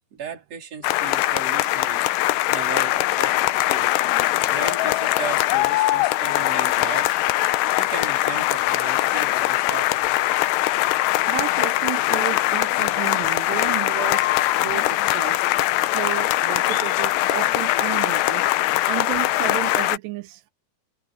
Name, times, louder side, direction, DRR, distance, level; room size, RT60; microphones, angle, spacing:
voice 1, 0.1-3.9 4.5-7.2 7.8-10.2, right 6 dB, 35° right, 5.5 m, -36 dB
sound 1, 0.8-20.0, left 17 dB, 85° left, 2.8 m, -21 dB
voice 2, 11.0-14.3 14.6-15.4 15.8-18.5 18.9-20.5, right 18 dB, 85° right, 2.7 m, -32 dB
omnidirectional pair, 5.0 m